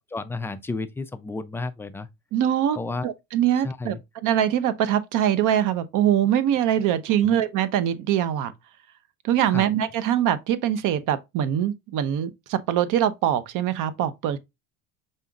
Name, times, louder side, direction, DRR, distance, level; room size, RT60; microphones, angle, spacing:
voice 1, 0.1-2.1 2.8-3.1 3.6-4.0 7.2-7.3 9.5-9.7, left 3 dB, 5° left, 0.3 m, -32 dB
voice 2, 2.3-2.8 3.0-3.9 4.2-8.5 9.2-14.4, right 10 dB, 50° right, 0.8 m, -23 dB
5.5 x 3.9 x 2.4 m
supercardioid pair, 105°, 39 cm